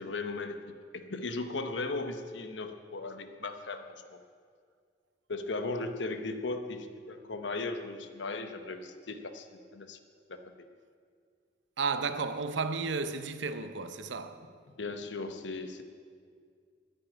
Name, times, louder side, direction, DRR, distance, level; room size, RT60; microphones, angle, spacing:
voice 1, 0.0-3.9 5.3-10.0 10.3-10.4 14.8-15.8, left 3 dB, 75° left, 1.0 m, -37 dB
voice 2, 11.8-14.5, right 4 dB, 80° right, 0.7 m, -33 dB
10.0 x 10.0 x 8.8 m
head